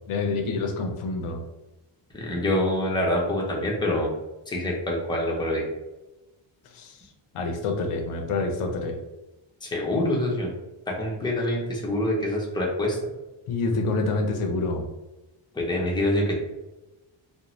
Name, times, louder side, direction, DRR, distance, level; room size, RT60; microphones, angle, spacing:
voice 1, 0.1-1.4 6.7-7.0 7.3-9.0 13.5-14.9, left 3 dB, 85° left, 4 dB, 0.6 m, -27 dB
voice 2, 2.1-4.1 4.5-5.6 9.6-10.5 10.9-13.0 15.5-16.3, left 1 dB, 10° left, -2 dB, 0.5 m, -25 dB
2.6 x 2.0 x 2.9 m, 1.0 s
wide cardioid pair, 135°, 50 cm